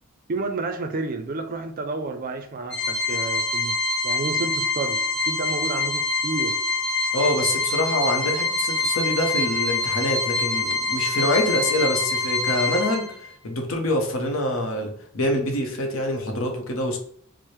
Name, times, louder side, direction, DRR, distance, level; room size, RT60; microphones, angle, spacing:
voice 1, 0.3-3.8 4.0-6.6, right 3 dB, 40° right, 8 dB, 0.4 m, -30 dB
Organ, 2.7-13.3, left 3 dB, 55° left, 1.4 m, -25 dB
voice 2, 7.1-13.2 13.4-17.0, left 1 dB, 75° left, 3 dB, 0.8 m, -25 dB
4.5 x 2.0 x 3.1 m, 0.62 s
head